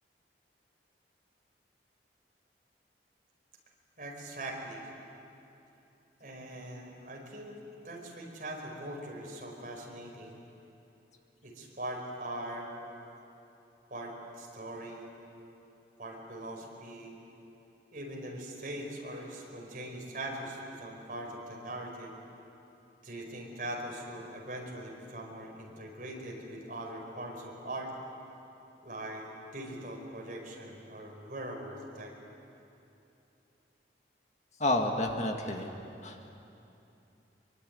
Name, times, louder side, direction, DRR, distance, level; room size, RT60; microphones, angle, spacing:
voice 1, 4.0-4.9 6.2-10.4 11.4-12.7 13.9-15.2 16.0-17.1 17.9-22.2 23.0-27.9 28.8-29.3 29.5-32.1, right 1 dB, 50° right, 0 dB, 5.3 m, -41 dB
voice 2, 34.6-35.7 36.0-36.3, left 1 dB, 40° left, 3 dB, 2.0 m, -30 dB
24.5 x 23.5 x 9.6 m, 2.8 s
head